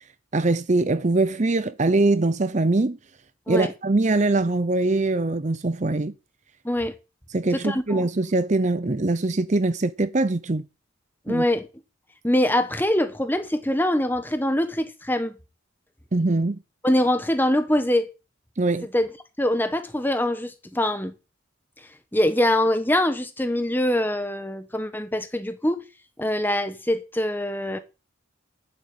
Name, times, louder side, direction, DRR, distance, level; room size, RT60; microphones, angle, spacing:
voice 1, 0.3-3.0 3.5-6.1 7.3-10.7 11.3-11.4 16.1-16.6 18.6-18.9, right 2 dB, 35° right, 0.6 m, -22 dB
voice 2, 7.5-8.0 11.3-11.7 12.2-15.4 16.8-18.1 18.9-19.1 19.4-21.1 22.1-25.8 26.2-27.8, left 1 dB, 10° left, 1.3 m, -23 dB
10.0 x 7.7 x 8.8 m
head